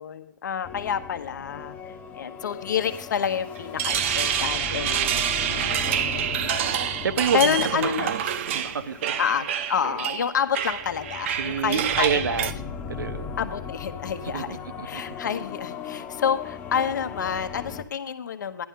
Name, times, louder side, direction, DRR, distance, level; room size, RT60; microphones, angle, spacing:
voice 1, 0.0-5.2 5.8-6.3 7.3-8.1 9.2-12.5 13.4-14.6 14.8-18.6, left 7 dB, 65° left, 9 dB, 1.1 m, -28 dB
sound 1, 0.6-17.8, left 7 dB, 15° left, 0.7 m, -38 dB
sound 2, 3.6-12.5, right 9 dB, 35° right, 0.7 m, -27 dB
voice 2, 4.8-6.5 7.0-8.2 8.5-9.2 11.4-13.3 14.3-15.0, right 6 dB, 75° right, 12 dB, 0.9 m, -30 dB
12.5 x 11.0 x 3.7 m, 0.64 s
hypercardioid pair, 155°, 11 cm